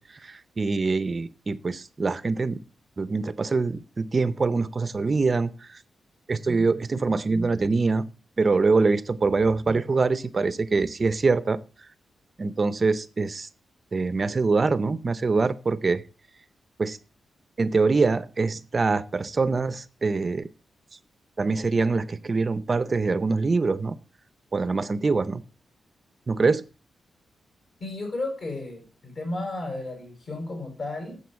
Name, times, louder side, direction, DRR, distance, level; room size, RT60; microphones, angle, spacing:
voice 1, 0.1-2.6 3.0-5.8 6.3-8.1 8.4-11.6 12.4-13.5 13.9-16.0 16.8-17.0 17.6-20.5 21.4-24.0 24.5-25.4 26.3-26.6, right 4 dB, 35° right, 16 dB, 0.6 m, -24 dB
voice 2, 27.8-31.2, left 2 dB, 55° left, 3 dB, 5.7 m, -33 dB
9.5 x 7.7 x 7.1 m, 0.37 s
wide cardioid pair, 120°, 0 cm